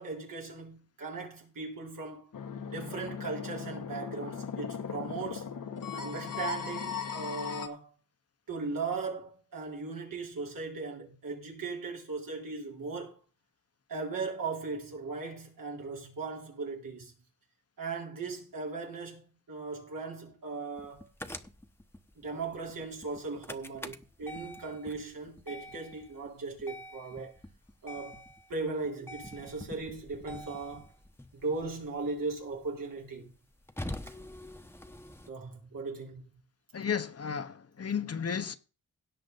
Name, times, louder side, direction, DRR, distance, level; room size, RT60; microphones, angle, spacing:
voice 1, 0.0-2.3 2.6-5.5 5.9-7.9 8.5-13.2 13.9-17.1 17.8-21.1 22.2-27.3 27.8-28.2 28.5-30.9 31.3-33.3 35.3-36.2, right 3 dB, 85° right, 4.1 m, -38 dB
sound 1, 2.3-7.7, left 6 dB, 80° left, 1.4 m, -38 dB
sound 2, 20.8-35.3, left 1 dB, 5° left, 1.0 m, -46 dB
voice 2, 36.7-38.6, left 7 dB, 50° left, 1.0 m, -33 dB
17.0 x 6.5 x 4.0 m
cardioid pair, 70°, 32 cm